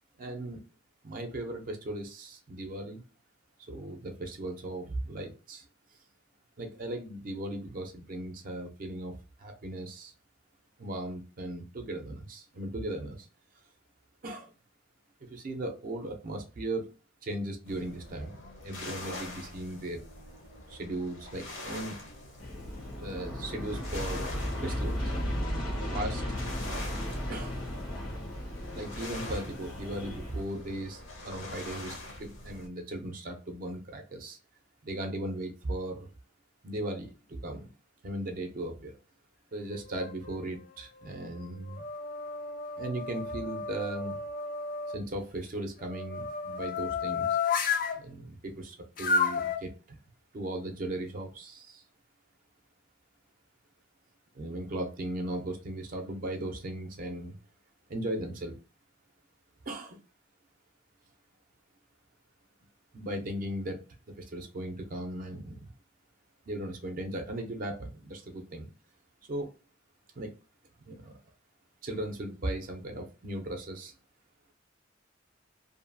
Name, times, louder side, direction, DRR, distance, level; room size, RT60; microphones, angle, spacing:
voice 1, 0.2-0.6 1.0-3.0 3.7-5.7 6.6-10.1 10.8-13.3 14.2-14.5 15.3-16.9 17.2-18.4 18.6-20.0 20.7-21.9 23.0-24.2 24.6-25.1 25.9-26.2 27.3-27.6 28.7-34.4 34.8-36.1 36.6-37.7 38.0-38.9 39.5-41.8 42.8-44.2 44.9-47.4 48.0-50.0 50.3-51.8 54.3-57.4 57.9-58.6 59.7-60.0 62.9-63.8 64.2-65.7 66.5-68.7 69.3-69.5 70.2-70.3 70.9-71.1 71.8-73.9, right 1 dB, 45° right, 4 dB, 0.4 m, -37 dB
sound 1, 17.7-32.7, left 2 dB, 65° left, 0.7 m, -44 dB
Aircraft, 22.4-30.4, equal, 90° left, 1.0 m, -35 dB
sound 2, 39.6-40.4 41.0-45.0 45.8-48.0 49.0-49.6, left 5 dB, 45° left, 0.3 m, -32 dB
2.5 x 2.3 x 2.5 m, 0.34 s
head